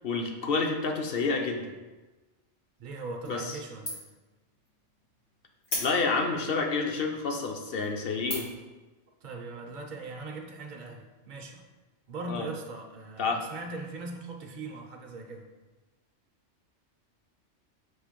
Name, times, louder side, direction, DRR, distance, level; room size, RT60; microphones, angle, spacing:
voice 1, 0.0-1.6 3.3-3.5 5.8-8.5 12.3-12.5 13.2-13.4, left 4 dB, 55° left, 2 dB, 0.9 m, -29 dB
voice 2, 2.8-4.0 9.2-11.6 12.1-15.5, right 3 dB, 50° right, 1 dB, 0.6 m, -40 dB
sound 1, 3.2-3.6 3.9-4.2 4.7-4.8 5.6-6.3 7.0-7.1 7.6-7.8 8.3-8.7, left 1 dB, 80° left, 2.2 m, -35 dB
6.2 x 3.0 x 5.1 m, 1.2 s
omnidirectional pair, 1.2 m